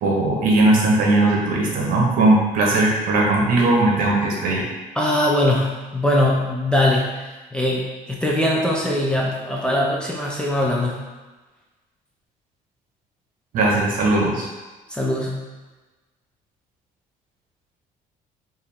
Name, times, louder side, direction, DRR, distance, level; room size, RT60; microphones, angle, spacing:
voice 1, 0.0-4.7 13.5-14.5, right 2 dB, 70° right, -1 dB, 0.9 m, -18 dB
voice 2, 5.0-7.2 7.5-11.0 14.9-15.4, left 1 dB, 5° left, -3 dB, 0.5 m, -21 dB
4.7 x 2.6 x 3.5 m, 1.2 s
cardioid pair, 165°, 15 cm